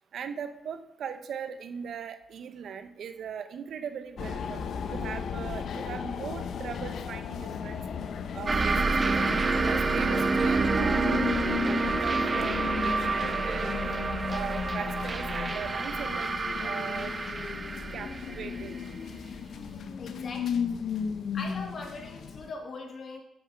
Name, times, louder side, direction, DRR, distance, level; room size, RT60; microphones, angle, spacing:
voice 1, 0.1-7.8 8.3-9.2 9.6-11.2 11.6-13.8 14.3-16.3 16.6-17.1 17.9-18.8, right 7 dB, 70° right, 10 dB, 0.8 m, -39 dB
sound 1, 4.2-22.5, left 6 dB, 70° left, 0.8 m, -35 dB
sound 2, 8.5-19.7, right 3 dB, 35° right, 0.8 m, -28 dB
voice 2, 20.0-20.7 21.3-23.2, left 3 dB, 50° left, 2 dB, 2.5 m, -40 dB
8.8 x 8.0 x 5.8 m, 0.85 s
cardioid pair, 70°, 0 cm